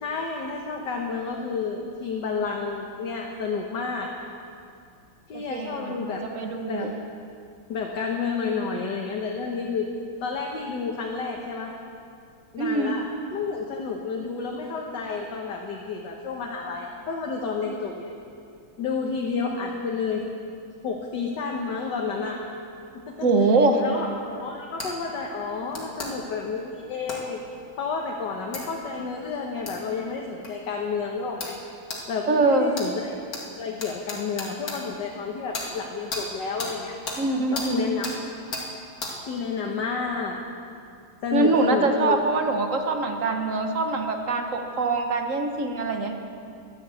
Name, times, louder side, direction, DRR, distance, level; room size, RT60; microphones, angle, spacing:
voice 1, 0.0-4.1 5.3-6.2 6.7-6.9 7.7-9.9 10.2-11.7 12.5-13.0 13.3-18.1 18.8-20.3 20.8-22.4 22.9-23.2 23.8-27.4 27.8-31.6 32.1-33.2 33.6-37.0 37.5-38.1 39.3-40.4 41.2-42.2, left 5 dB, 65° left, 0 dB, 1.7 m, -30 dB
voice 2, 5.3-6.9 12.6-13.0 23.2-23.8 32.3-32.7 37.2-37.9 41.3-46.1, right 3 dB, 45° right, 4 dB, 1.3 m, -24 dB
sound 1, 24.8-24.9 25.7-26.1 27.1-27.2 28.5-28.6 29.7-29.8 30.4-30.5 31.4-31.6 31.9-32.0 32.7-32.9 33.3-33.4 33.8-34.8 35.5-35.7 36.1-36.2 36.6-36.7 37.1-37.2 37.5-37.7 38.0-38.2 38.5-38.7 39.0-39.1, left 2 dB, 45° left, 2.4 m, -33 dB
12.5 x 10.5 x 8.2 m, 2.5 s
omnidirectional pair, 2.2 m